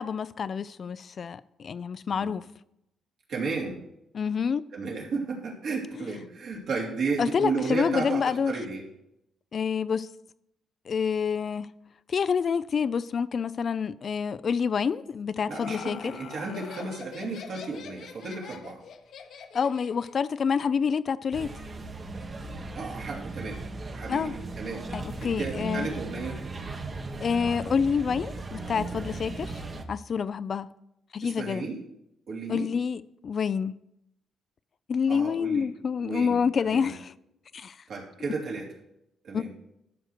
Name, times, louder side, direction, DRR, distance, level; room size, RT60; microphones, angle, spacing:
voice 1, 0.0-2.4 4.1-4.6 6.0-6.1 7.2-8.5 9.5-10.1 10.9-11.7 12.1-16.1 19.5-21.5 24.1-24.3 24.9-25.9 27.2-29.6 29.9-30.7 31.1-31.6 32.5-33.7 34.9-37.1 37.5-37.8 39.3-39.4, left 6 dB, 50° left, 0.4 m, -27 dB
voice 2, 3.3-3.8 4.7-8.8 15.5-18.8 22.7-23.6 23.9-24.8 25.2-26.4 31.2-31.8 32.3-32.7 35.1-35.7 36.0-36.9 37.9-38.7 39.2-39.5, right 4 dB, 65° right, 2.8 m, -33 dB
Laughter, 15.1-20.2, left 7 dB, 65° left, 1.0 m, -43 dB
sound 1, 21.3-29.9, right 3 dB, 35° right, 1.1 m, -37 dB
12.5 x 6.5 x 4.5 m
cardioid pair, 90°, 0 cm